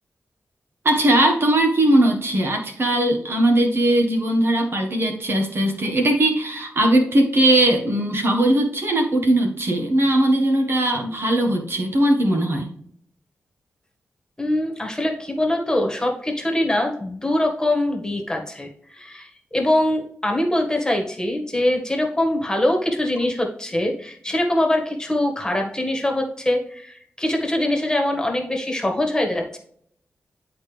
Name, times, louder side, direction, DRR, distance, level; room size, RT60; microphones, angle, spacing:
voice 1, 0.8-12.7, right 1 dB, 55° right, 3 dB, 1.5 m, -19 dB
voice 2, 14.4-29.6, left 1 dB, 15° left, 2 dB, 1.8 m, -23 dB
11.0 x 4.1 x 3.4 m, 0.64 s
cardioid pair, 65°, 5 cm